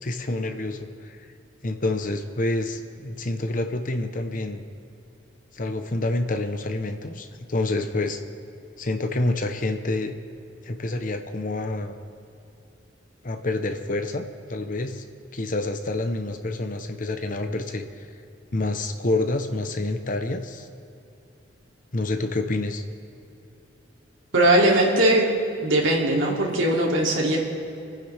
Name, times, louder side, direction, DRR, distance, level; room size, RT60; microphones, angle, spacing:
voice 1, 0.0-1.2 1.6-4.6 5.5-8.2 8.8-10.1 10.6-12.0 13.2-14.2 14.5-15.0 15.3-17.8 18.5-20.7 21.9-22.8, left 2 dB, 45° left, 7 dB, 0.9 m, -27 dB
voice 2, 24.3-25.3 25.6-27.4, right 1 dB, 85° right, -2 dB, 2.8 m, -20 dB
28.0 x 9.8 x 3.5 m, 2.7 s
head